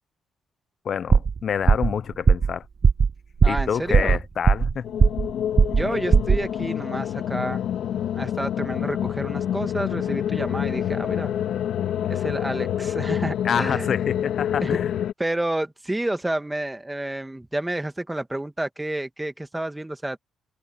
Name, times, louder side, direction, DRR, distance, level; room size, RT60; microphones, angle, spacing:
voice 1, 0.8-2.6 3.5-4.9 13.4-15.0, left 7 dB, 55° left, 1.0 m, -27 dB
sound 1, 1.1-1.4 1.7-1.9 2.3-2.5 2.8-3.1 3.4-3.7 3.9-4.7 5.0-5.3 5.6-5.9 6.1-6.4, right 5 dB, 40° right, 0.4 m, -17 dB
voice 2, 3.4-4.2 5.7-7.6 8.1-11.3 12.1-13.9 14.6-14.8 15.2-20.2, right 1 dB, 10° right, 1.9 m, -30 dB
sound 2, 4.8-15.1, left 10 dB, 75° left, 1.9 m, -27 dB
cardioid pair, 90°, 0 cm